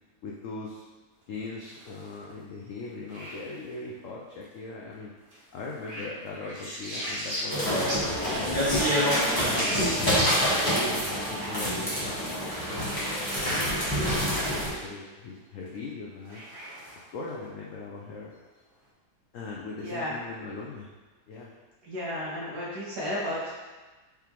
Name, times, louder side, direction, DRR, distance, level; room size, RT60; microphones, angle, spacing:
voice 1, 0.2-0.8 1.3-5.1 5.5-8.9 9.4-12.3 12.7-16.4 17.1-18.3 19.3-20.9 21.3-21.5, left 3 dB, 75° left, -3 dB, 0.7 m, -39 dB
sound 1, 1.5-2.2 3.1-3.7 5.3-8.1 8.5-8.6 9.1-10.9 11.7-11.9 15.7-15.8 16.3-17.3, equal, 35° right, 0.9 m, -36 dB
sound 2, 7.5-14.7, equal, 15° left, 1.2 m, -27 dB
voice 2, 19.8-20.2 21.8-23.5, left 1 dB, 65° right, -8 dB, 1.9 m, -33 dB
4.8 x 3.6 x 3.0 m, 1.3 s
omnidirectional pair, 1.9 m